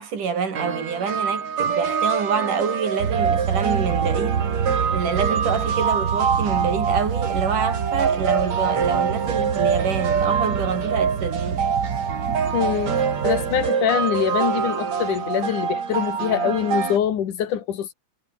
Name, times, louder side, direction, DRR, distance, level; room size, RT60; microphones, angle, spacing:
voice 1, 0.0-11.6, right 6 dB, 80° right, 5.5 m, -27 dB
sound 1, 0.6-17.0, right 6 dB, 60° right, 4.3 m, -25 dB
sound 2, 3.0-13.7, right 7 dB, 40° right, 1.6 m, -28 dB
voice 2, 12.5-13.0 13.2-17.9, left 9 dB, 75° left, 3.5 m, -24 dB
omnidirectional pair, 3.7 m